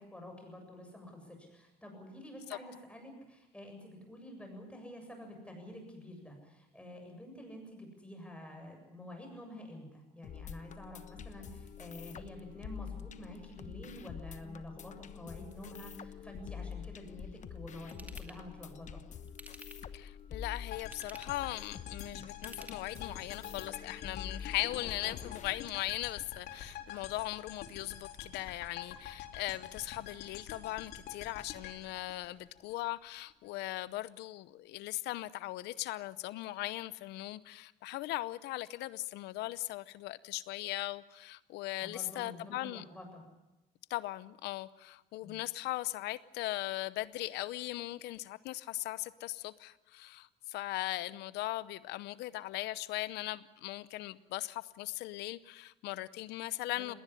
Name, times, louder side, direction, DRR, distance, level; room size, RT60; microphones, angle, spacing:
voice 1, 0.0-19.0 41.8-43.2 45.2-45.4 56.7-57.0, left 1 dB, 5° left, 3 dB, 7.7 m, -49 dB
sound 1, 10.2-25.6, left 7 dB, 45° left, 1.1 m, -46 dB
Ratchet pawl / Tools, 17.9-18.4 19.3-20.0 20.8-21.5 22.3-23.2 23.7-23.8, right 1 dB, 10° right, 2.4 m, -51 dB
voice 2, 19.9-42.8 43.9-56.9, left 17 dB, 90° left, 17 dB, 0.8 m, -39 dB
sound 2, 20.7-32.9, left 9 dB, 70° left, 4.0 m, -47 dB
20.0 x 18.5 x 9.9 m, 0.99 s
cardioid pair, 110°, 17 cm